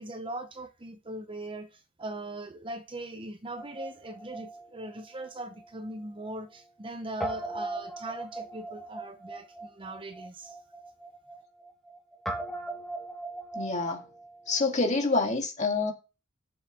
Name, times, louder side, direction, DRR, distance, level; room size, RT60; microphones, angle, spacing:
voice 1, 0.0-10.6, right 1 dB, 25° right, 0.7 m, -40 dB
Guitar, 3.5-6.0 6.2-6.3 7.2-15.1, right 2 dB, ahead, 1.9 m, -40 dB
voice 2, 13.5-14.0 14.5-15.9, left 3 dB, 35° left, 2.0 m, -27 dB
11.0 x 7.0 x 3.7 m
head